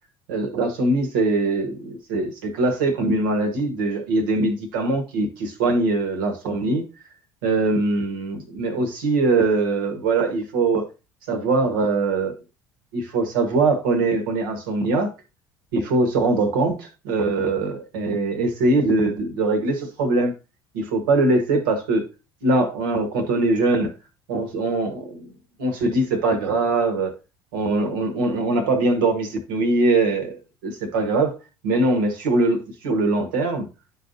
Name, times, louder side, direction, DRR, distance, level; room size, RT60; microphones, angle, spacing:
voice 1, 0.3-6.8 7.4-10.8 11.3-12.3 12.9-15.1 15.7-20.3 20.7-22.0 22.4-23.9 24.3-25.3 25.6-27.1 27.5-30.4 30.6-31.4 31.6-33.7, right 2 dB, 70° right, 1.3 m, -22 dB
11.0 x 4.2 x 2.6 m
figure-of-eight pair, 60°, 12 cm